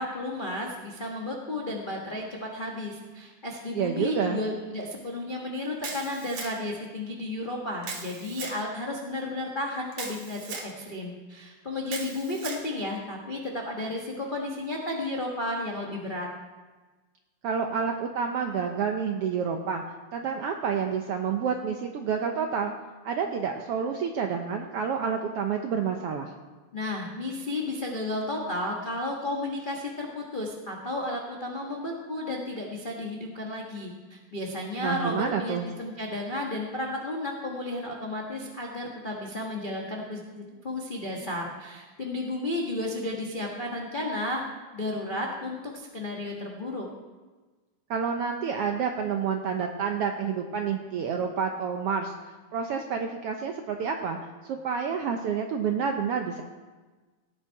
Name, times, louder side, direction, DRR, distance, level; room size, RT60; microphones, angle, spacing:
voice 1, 0.0-16.3 26.7-44.4 44.7-46.9, left 2 dB, 80° left, -2 dB, 0.4 m, -33 dB
voice 2, 3.7-4.4 17.4-19.8 20.1-22.7 23.0-26.3 34.8-35.7 47.9-52.1 52.5-54.2 54.4-56.4, right 6 dB, 75° right, 4 dB, 1.3 m, -29 dB
Camera, 5.8-6.8 7.8-8.6 9.9-10.7 11.9-12.6, right 4 dB, 50° right, 2.2 m, -38 dB
17.0 x 8.4 x 4.7 m, 1.3 s
omnidirectional pair, 3.5 m